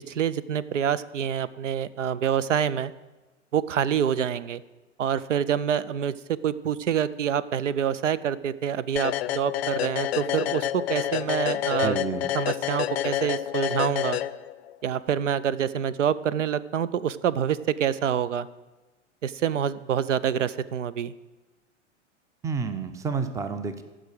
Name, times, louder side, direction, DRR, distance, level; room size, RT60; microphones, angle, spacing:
voice 1, 0.1-2.9 3.5-4.6 5.0-12.0 12.3-14.2 14.8-18.5 19.2-21.1, right 8 dB, 75° right, 18 dB, 0.5 m, -26 dB
sound 1, 9.0-14.8, left 13 dB, 55° left, 0.5 m, -28 dB
voice 2, 11.8-12.3 22.4-23.8, right 5 dB, 10° right, 11 dB, 0.5 m, -30 dB
14.5 x 5.0 x 6.3 m, 1.2 s
figure-of-eight pair, 95°, 37 cm